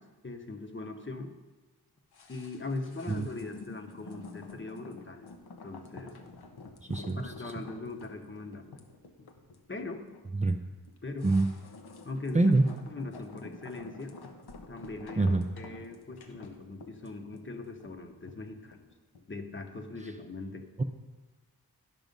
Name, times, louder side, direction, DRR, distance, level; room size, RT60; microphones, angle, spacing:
voice 1, 0.0-1.3 2.3-5.3 5.6-6.1 7.2-8.8 9.7-10.1 11.0-11.3 12.0-12.5 12.9-14.1 14.7-18.9 19.3-20.7, left 3 dB, 30° left, 5 dB, 0.9 m, -40 dB
sound 1, 2.1-19.4 19.7-19.8, left 3 dB, 90° left, 0.9 m, -49 dB
voice 2, 12.3-12.7 15.2-15.4 20.8-20.9, right 2 dB, 20° right, 4 dB, 0.5 m, -24 dB
10.5 x 6.1 x 5.3 m, 1.3 s
wide cardioid pair, 100°, 37 cm